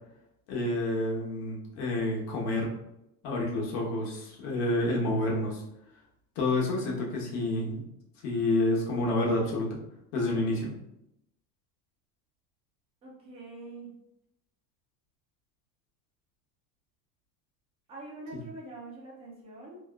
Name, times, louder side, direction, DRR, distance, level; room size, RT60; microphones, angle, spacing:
voice 1, 0.5-2.7 3.2-5.6 6.4-7.8 8.2-9.8 10.1-10.8, left 2 dB, 75° left, -2 dB, 1.0 m, -29 dB
voice 2, 13.0-13.9 17.9-19.8, right 2 dB, 15° right, -5 dB, 0.3 m, -44 dB
2.8 x 2.2 x 2.2 m, 0.80 s
cardioid pair, 160°, 47 cm